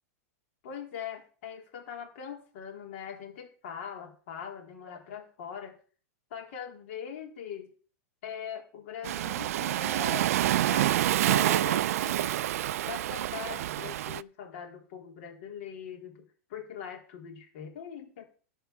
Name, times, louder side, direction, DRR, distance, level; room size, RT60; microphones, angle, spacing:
voice 1, 0.6-5.8 6.3-7.7 8.2-18.2, left 8 dB, 55° left, 2 dB, 3.7 m, -42 dB
Waves surf, 9.0-14.2, right 13 dB, 65° right, 0.4 m, -27 dB
11.5 x 4.7 x 7.9 m, 0.40 s
supercardioid pair, 150°, 8 cm